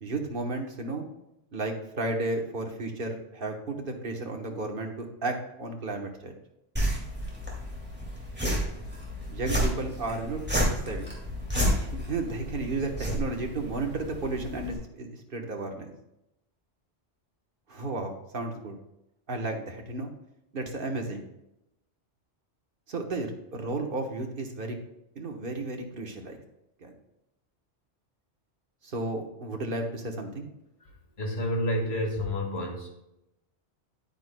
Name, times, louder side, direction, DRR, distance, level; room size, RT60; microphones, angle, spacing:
voice 1, 0.0-1.1 1.5-6.3 9.3-11.1 11.7-15.9 17.7-18.8 19.3-20.1 20.5-21.2 22.9-24.8 25.1-26.4 26.8-26.9 28.8-30.5, right 2 dB, 50° right, 3 dB, 1.3 m, -33 dB
sound 1, 6.8-14.8, equal, 10° right, 2.1 m, -31 dB
voice 2, 30.8-32.9, left 1 dB, 65° left, 1 dB, 1.9 m, -30 dB
9.8 x 9.1 x 2.2 m, 0.88 s
omnidirectional pair, 1.2 m